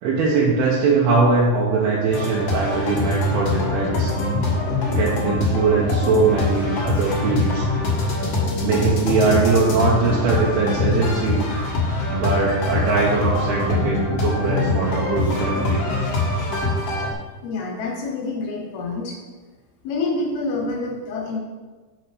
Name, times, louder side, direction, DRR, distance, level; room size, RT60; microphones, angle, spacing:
voice 1, 0.0-4.1 4.9-7.7 8.6-11.5 12.1-15.8, right 4 dB, 75° right, -4 dB, 2.7 m, -21 dB
sound 1, 2.1-17.1, left 2 dB, 55° left, 1.8 m, -23 dB
voice 2, 17.4-19.2 19.8-21.4, left 3 dB, 70° left, 0 dB, 2.9 m, -27 dB
6.4 x 6.3 x 4.8 m, 1.3 s
omnidirectional pair, 4.8 m